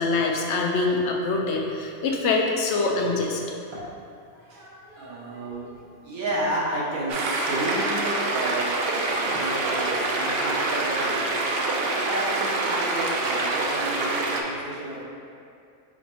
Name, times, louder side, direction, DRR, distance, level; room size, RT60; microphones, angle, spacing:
voice 1, 0.0-3.4, left 3 dB, 65° left, 0 dB, 0.8 m, -24 dB
voice 2, 4.3-15.0, right 1 dB, 85° right, -6 dB, 1.5 m, -32 dB
sound 1, 7.1-14.4, right 2 dB, 65° right, 0.6 m, -26 dB
5.7 x 2.3 x 4.1 m, 2.4 s
omnidirectional pair, 1.4 m